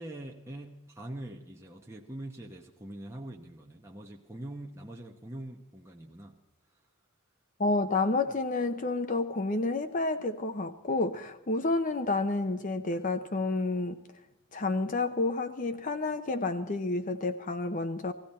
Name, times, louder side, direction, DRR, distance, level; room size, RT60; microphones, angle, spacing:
voice 1, 0.0-6.5, right 1 dB, 10° right, 0 dB, 1.0 m, -43 dB
voice 2, 7.6-14.0 14.5-18.1, left 2 dB, 35° left, 7 dB, 0.8 m, -30 dB
18.5 x 16.0 x 4.3 m, 0.97 s
head